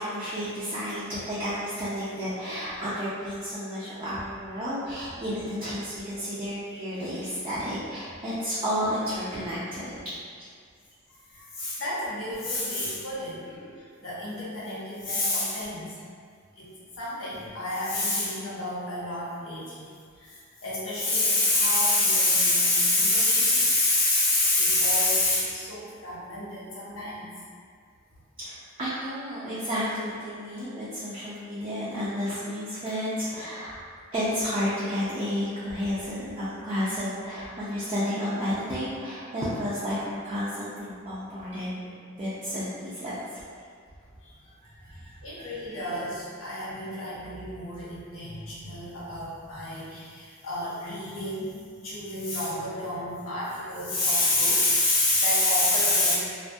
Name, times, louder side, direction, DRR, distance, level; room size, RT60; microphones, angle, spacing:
voice 1, 0.0-9.9 10.4-10.5 28.4-33.7 34.1-41.7 42.2-43.2 44.6-45.5, equal, 25° right, -11 dB, 0.4 m, -31 dB
voice 2, 11.3-16.0 16.6-16.7 17.0-19.9 20.2-27.3 45.2-51.5 51.8-56.2, left 2 dB, 75° left, -8 dB, 0.8 m, -27 dB
2.2 x 2.2 x 2.6 m, 2.1 s
head